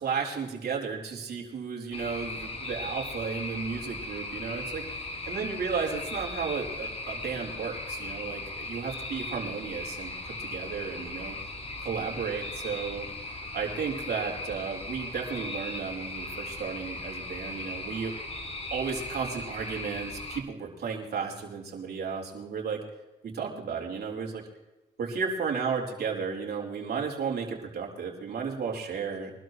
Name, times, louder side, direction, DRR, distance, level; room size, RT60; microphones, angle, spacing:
voice 1, 0.0-4.8 5.2-11.4 11.8-13.1 13.5-18.1 18.7-22.8 23.2-24.4 25.0-29.3, right 6 dB, 55° right, -1 dB, 4.1 m, -33 dB
sound 1, 1.9-20.4, left 2 dB, 30° left, 2.3 m, -38 dB
24.0 x 12.5 x 3.2 m, 1.1 s
cardioid pair, 90°, 20 cm